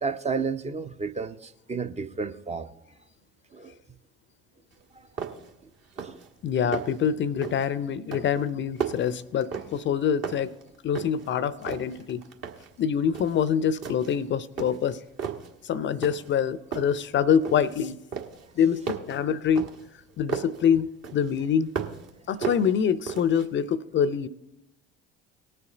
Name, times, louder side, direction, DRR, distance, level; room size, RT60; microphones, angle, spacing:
voice 1, 0.0-2.7 3.5-3.8 4.9-5.1 6.0-6.2 6.6-6.8 19.3-19.4, right 5 dB, 20° right, 0.5 m, -32 dB
sound 1, 4.7-4.8 5.2-5.6 5.9-6.3 6.6-7.1 7.4-7.7 8.1-9.9 10.2-11.3 11.6-12.7 13.1-13.4 13.8-14.2 14.6-15.5 16.0-16.4 16.7-17.8 18.1-20.6 21.0-22.1 22.4-23.5, right 6 dB, 50° right, 1.5 m, -35 dB
voice 2, 6.4-10.5 10.8-12.2 12.8-15.0 15.6-18.0 18.6-19.7 20.2-21.7 22.3-24.3, left 8 dB, 35° left, 0.5 m, -25 dB
18.5 x 6.7 x 3.9 m
hypercardioid pair, 60°, 32 cm